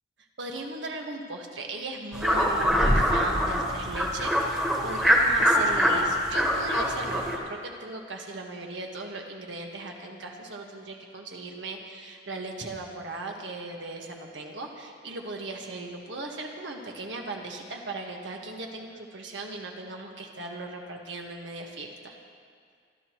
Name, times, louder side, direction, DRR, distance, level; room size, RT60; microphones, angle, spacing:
voice 1, 0.4-22.1, right 2 dB, 85° right, 1 dB, 1.5 m, -38 dB
sound 1, 2.1-7.4, equal, 5° right, 1.5 m, -23 dB
24.5 x 12.5 x 3.1 m, 2.1 s
head